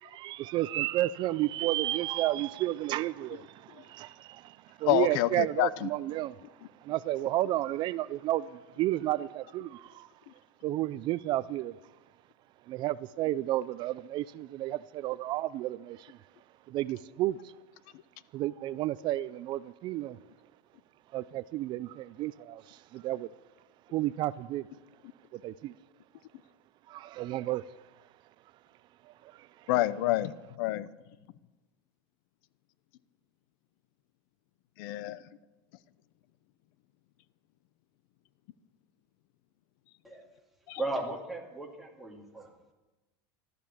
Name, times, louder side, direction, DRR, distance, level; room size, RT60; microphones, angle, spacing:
voice 1, 0.0-6.4 6.8-10.1 10.6-11.8 12.7-16.2 16.7-17.5 18.3-20.2 21.1-23.3 23.9-24.7 25.3-25.7 26.9-27.7 29.1-29.7, right 15 dB, 40° right, 17 dB, 0.4 m, -32 dB
voice 2, 4.9-5.9 29.7-30.9 34.8-35.2 40.7-40.8, left 15 dB, 65° left, 17 dB, 0.7 m, -28 dB
voice 3, 40.8-42.5, right 2 dB, ahead, -1 dB, 2.3 m, -36 dB
14.0 x 12.0 x 7.2 m, 1.1 s
supercardioid pair, 150°, 12 cm